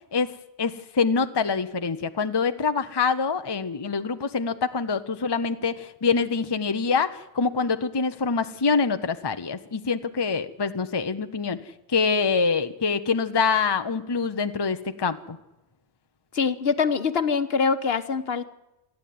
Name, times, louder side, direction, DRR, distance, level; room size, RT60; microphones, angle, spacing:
voice 1, 0.6-11.6 11.9-15.4, left 5 dB, 25° left, 9 dB, 0.8 m, -25 dB
voice 2, 16.3-18.4, left 5 dB, 60° left, 11 dB, 1.4 m, -24 dB
27.0 x 10.5 x 9.5 m, 0.97 s
omnidirectional pair, 1.2 m